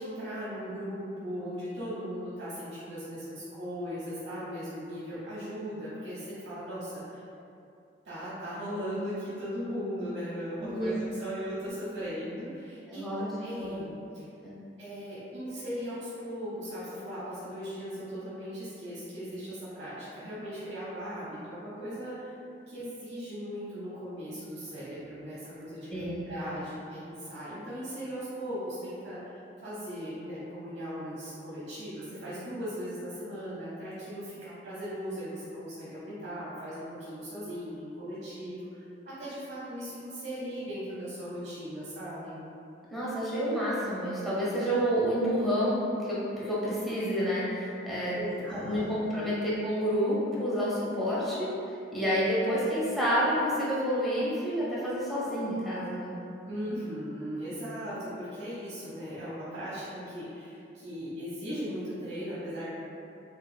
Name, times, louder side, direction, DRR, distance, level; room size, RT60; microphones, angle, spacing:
voice 1, 0.0-7.2 8.0-14.3 14.8-22.3 22.7-42.4 48.1-49.3 56.5-62.6, equal, 65° right, -10 dB, 0.9 m, -38 dB
voice 2, 10.6-11.0 12.9-13.3 13.6-13.8 14.4-14.5 25.9-26.3 42.9-48.1 48.5-51.5 51.9-56.1, equal, ahead, -10 dB, 0.9 m, -29 dB
3.8 x 3.6 x 2.2 m, 2.6 s
head